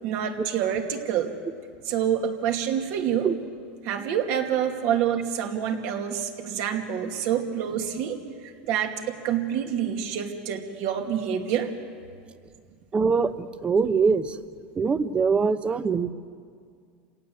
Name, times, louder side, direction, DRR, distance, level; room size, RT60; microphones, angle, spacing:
voice 1, 0.0-1.3 1.9-3.3 3.8-11.7, right 9 dB, 60° right, 3 dB, 2.6 m, -27 dB
voice 2, 12.9-14.4 14.7-16.1, right 5 dB, 20° right, 12 dB, 1.0 m, -23 dB
28.0 x 18.0 x 7.9 m, 2.2 s
supercardioid pair, 130°, 6 cm